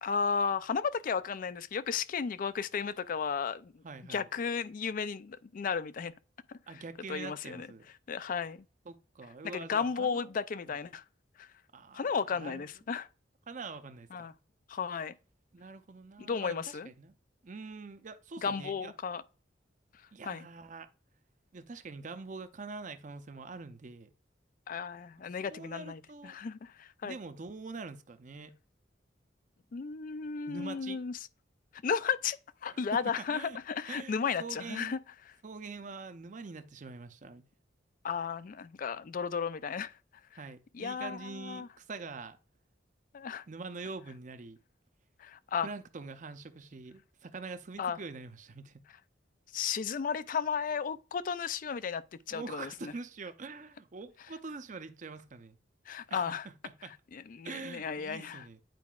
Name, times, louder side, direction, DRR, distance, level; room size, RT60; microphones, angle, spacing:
voice 1, 0.0-3.8 4.1-6.1 6.5-6.8 7.1-7.7 8.1-8.7 9.4-11.0 11.4-11.5 11.9-13.1 14.1-14.3 14.7-15.1 16.2-16.9 18.4-19.2 20.2-20.4 24.7-27.2 29.7-31.2 31.8-32.4 32.6-35.0 38.0-39.9 40.7-41.7 43.1-43.4 45.2-45.7 47.8-48.0 49.5-52.0 52.3-52.9 55.9-56.5 57.1-58.5, left 6 dB, 45° left, 0.4 m, -34 dB
voice 2, 3.8-4.3 6.7-7.8 8.9-10.2 10.7-10.8 11.7-12.0 12.4-12.6 13.5-14.3 15.5-17.1 17.4-18.9 20.1-20.9 21.5-24.1 25.4-26.4 27.0-28.5 30.5-31.0 32.7-33.0 33.3-33.6 33.9-35.0 35.4-37.4 40.4-42.4 43.5-44.6 45.6-48.8 52.3-55.6 56.1-56.9 57.4-58.6, right 4 dB, 45° right, 0.6 m, -44 dB
9.1 x 4.7 x 2.3 m
head